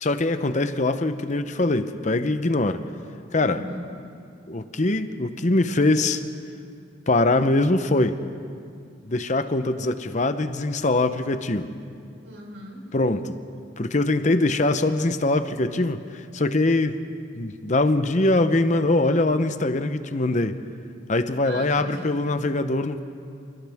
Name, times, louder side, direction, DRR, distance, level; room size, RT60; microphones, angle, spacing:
voice 1, 0.0-2.8 3.3-3.6 4.5-6.2 7.1-8.2 9.0-11.7 12.9-13.4 13.8-17.0 17.3-20.6 21.1-23.0, left 2 dB, 40° left, 10 dB, 0.8 m, -22 dB
voice 2, 3.4-4.1 12.2-12.9 21.4-22.3, equal, 85° right, 0 dB, 4.4 m, -39 dB
29.5 x 27.5 x 3.6 m, 2.3 s
head